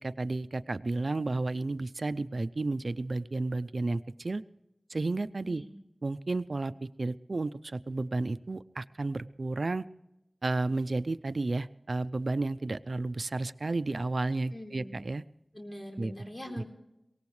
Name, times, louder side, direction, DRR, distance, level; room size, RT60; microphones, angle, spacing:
voice 1, 0.0-4.4 4.9-5.6 6.0-9.9 10.4-15.2 16.0-16.1 16.6-16.7, right 2 dB, 80° right, 15 dB, 0.5 m, -32 dB
voice 2, 14.5-15.0 15.5-16.6, left 1 dB, 30° left, 1 dB, 3.9 m, -43 dB
23.0 x 18.5 x 3.2 m, 0.88 s
wide cardioid pair, 40°, 0 cm